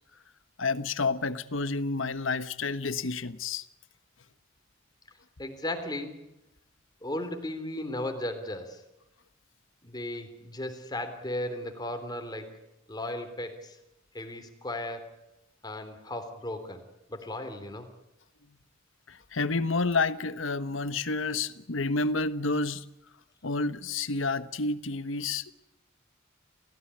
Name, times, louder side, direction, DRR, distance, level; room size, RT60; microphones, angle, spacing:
voice 1, 0.6-3.6 19.1-22.8 23.4-25.5, left 3 dB, 75° left, 1.2 m, -29 dB
voice 2, 5.4-6.1 7.0-8.8 9.8-12.6 12.9-13.8 14.1-15.2 15.6-16.8 17.1-17.9, left 1 dB, 20° left, 3.5 m, -36 dB
29.5 x 16.0 x 9.9 m
head